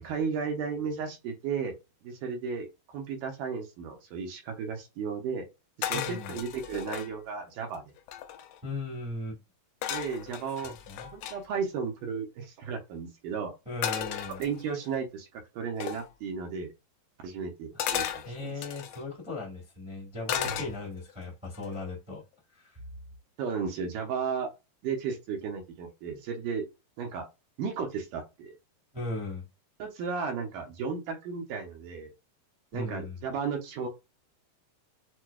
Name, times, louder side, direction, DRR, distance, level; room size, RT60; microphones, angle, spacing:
voice 1, 0.0-1.8 2.0-5.5 5.8-7.9 9.9-10.7 11.1-13.5 14.4-16.7 17.2-18.5 20.4-20.7 23.4-24.5 24.8-26.7 27.0-27.3 27.6-28.5 29.8-32.1 32.7-33.9, right 5 dB, 75° right, 2.4 m, -34 dB
sound 1, 5.8-7.1 7.7-7.8 8.0-8.6 9.8-11.4 13.8-14.9 15.8-16.1 17.8-19.0 20.3-21.1 21.5-21.9, left 10 dB, 80° left, 2.1 m, -35 dB
voice 2, 5.9-6.4 8.6-9.4 10.6-11.1 13.6-14.4 18.2-22.2 22.5-22.8 28.9-29.4 32.7-33.2, left 2 dB, 10° right, 0.3 m, -37 dB
6.2 x 2.2 x 2.3 m
omnidirectional pair, 3.9 m